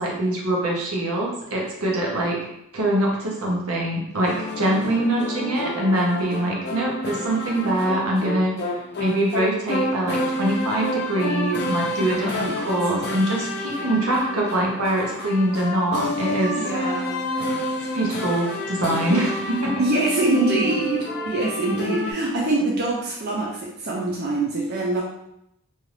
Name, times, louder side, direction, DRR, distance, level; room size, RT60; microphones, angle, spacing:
voice 1, 0.0-2.4 2.7-8.5 9.0-16.6 17.9-19.8, right 1 dB, 85° right, -2 dB, 0.8 m, -24 dB
sound 1, 4.2-22.1, left 1 dB, 50° left, 0.5 m, -29 dB
voice 2, 12.0-12.6 16.5-17.3 19.1-19.2 19.8-25.0, right 2 dB, 45° right, -3 dB, 0.5 m, -24 dB
2.7 x 2.4 x 3.2 m, 0.78 s
head